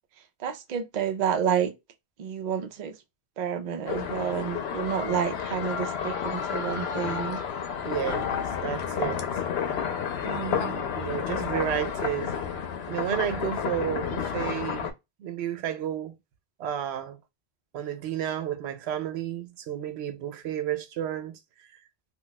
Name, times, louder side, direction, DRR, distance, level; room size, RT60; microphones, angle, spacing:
voice 1, 0.4-1.7 2.2-3.0 3.4-7.4 10.2-11.0, right 8 dB, 55° right, 0.5 m, -30 dB
sound 1, 3.9-14.9, left 7 dB, 75° left, 0.8 m, -31 dB
voice 2, 7.8-9.2 10.9-12.3 12.9-14.9 15.2-16.1 16.6-17.2 17.7-21.7, right 10 dB, 85° right, 0.8 m, -32 dB
2.3 x 2.2 x 3.8 m
omnidirectional pair, 1.1 m